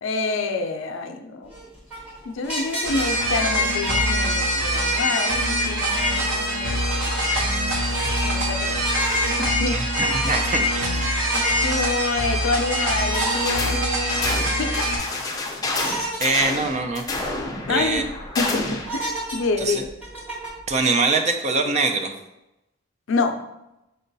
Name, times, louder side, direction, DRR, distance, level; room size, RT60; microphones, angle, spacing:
voice 1, 0.0-1.5 2.2-7.9 8.2-8.8 9.1-10.2 11.1-14.8 17.7-19.9 23.1-23.4, left 3 dB, 70° left, 6 dB, 0.5 m, -28 dB
sound 1, 1.4-4.6 4.9-6.6 6.9-7.2 7.8-8.4 8.8-9.5 9.9-10.7 11.2-11.7 13.0-14.2 14.6-14.7 15.8-16.2 16.7-16.8 17.1-17.2 17.7-18.0 18.8-20.7, right 2 dB, 5° right, 1.1 m, -32 dB
sound 2, 2.8-15.0, equal, 70° right, 0.9 m, -23 dB
voice 2, 9.7-11.1 16.2-17.0 17.7-18.0 19.6-19.8 20.7-22.1, right 3 dB, 35° right, 6 dB, 0.5 m, -23 dB
sound 3, 13.5-13.8 14.1-18.9, left 2 dB, 20° left, 0.5 m, -28 dB
5.2 x 2.3 x 3.9 m, 0.91 s
head